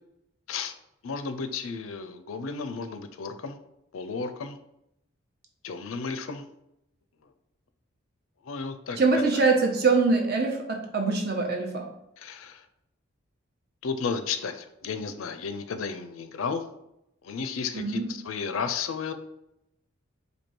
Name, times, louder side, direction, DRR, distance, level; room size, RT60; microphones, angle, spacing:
voice 1, 1.0-3.6 3.9-4.6 5.6-6.4 8.4-9.0 12.2-12.6 13.8-16.6 17.2-19.1, left 5 dB, 80° left, 9 dB, 0.5 m, -33 dB
voice 2, 8.9-11.8 17.7-18.1, right 4 dB, 50° right, 1 dB, 0.9 m, -23 dB
4.5 x 2.7 x 4.3 m, 0.82 s
head